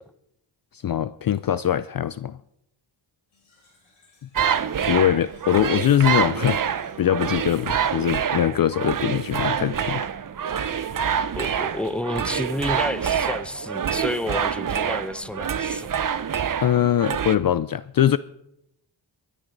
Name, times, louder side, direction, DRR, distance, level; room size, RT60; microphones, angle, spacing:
voice 1, 0.7-2.4 4.8-10.1 16.6-18.2, left 10 dB, 50° left, 0.5 m, -22 dB
Fill (with liquid), 3.3-8.3, left 3 dB, 85° left, 6.1 m, -58 dB
sound 1, 4.3-17.4, right 8 dB, 45° right, 0.7 m, -26 dB
voice 2, 11.3-15.9, left 1 dB, ahead, 0.7 m, -30 dB
24.0 x 10.0 x 3.9 m
cardioid pair, 70°, 47 cm